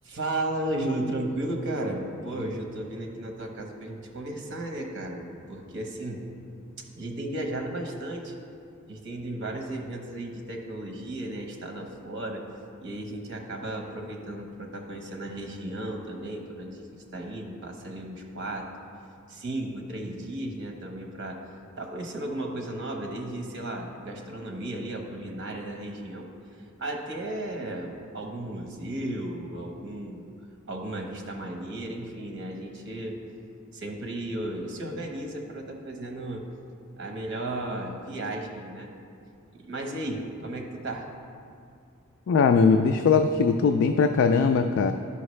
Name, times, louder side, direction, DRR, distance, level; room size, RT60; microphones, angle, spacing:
voice 1, 0.0-6.2 7.0-8.3 8.9-12.4 12.8-18.7 19.3-21.4 21.8-26.3 26.8-30.3 30.7-33.2 33.7-36.4 37.0-38.9 39.5-41.1, right 1 dB, 55° right, 2 dB, 1.0 m, -34 dB
voice 2, 42.3-44.9, left 5 dB, 60° left, 6 dB, 0.3 m, -20 dB
11.0 x 5.7 x 3.2 m, 2.3 s
head